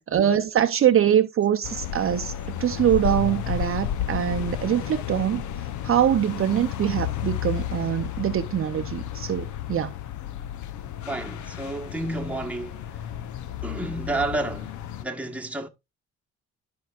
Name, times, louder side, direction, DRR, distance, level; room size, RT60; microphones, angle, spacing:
voice 1, 0.1-2.3 2.6-5.4 5.8-9.9, right 10 dB, 45° right, 0.6 m, -23 dB
sound 1, 1.6-15.0, left 11 dB, 75° left, 0.7 m, -32 dB
voice 2, 11.0-13.1 13.6-15.7, right 2 dB, 5° right, 1.2 m, -31 dB
12.5 x 4.7 x 2.4 m
cardioid pair, 90°, 30 cm